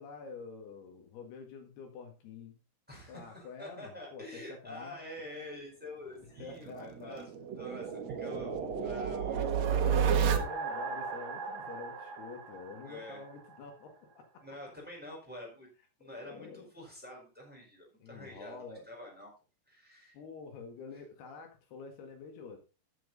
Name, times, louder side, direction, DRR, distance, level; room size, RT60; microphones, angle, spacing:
voice 1, 0.0-2.6 3.1-5.0 6.4-7.2 8.3-9.5 9.8-14.2 16.0-16.7 18.0-18.9 20.1-22.6, left 5 dB, 75° left, 4 dB, 3.8 m, -47 dB
voice 2, 2.9-7.3 7.6-8.6 8.8-9.8 12.8-13.2 14.4-15.7 16.0-18.6 18.9-19.3 19.7-20.2, left 1 dB, ahead, -1 dB, 4.2 m, -47 dB
sound 1, 6.4-13.2, right 7 dB, 70° right, 1.6 m, -32 dB
13.5 x 7.5 x 4.0 m, 0.33 s
omnidirectional pair, 4.7 m